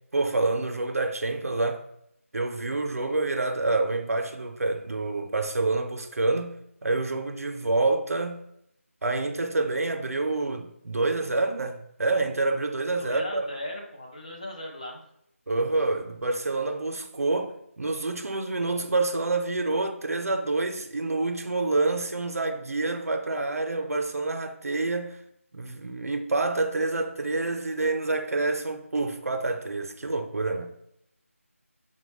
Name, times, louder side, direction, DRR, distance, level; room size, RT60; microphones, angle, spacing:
voice 1, 0.1-1.8 2.3-8.4 9.0-13.4 15.5-25.2 25.5-30.7, right 3 dB, 90° right, 0.5 m, -27 dB
voice 2, 13.0-15.0, left 1 dB, 30° left, 0.6 m, -37 dB
4.0 x 2.1 x 3.1 m
figure-of-eight pair, 175°, 8 cm